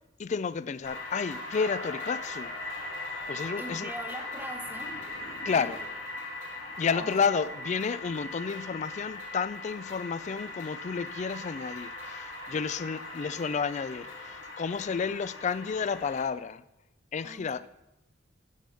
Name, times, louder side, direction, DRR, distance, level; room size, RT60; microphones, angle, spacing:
voice 1, 0.2-2.5 3.3-3.9 5.4-5.8 6.8-16.6 17.1-17.7, left 5 dB, 35° left, 15 dB, 0.3 m, -31 dB
sound 1, 0.8-16.2, left 2 dB, 75° left, 2.5 m, -39 dB
voice 2, 3.6-5.0 5.5-5.7 7.0-7.1 17.2-17.7, right 1 dB, 10° right, 6 dB, 0.8 m, -42 dB
9.1 x 7.0 x 5.6 m, 0.91 s
head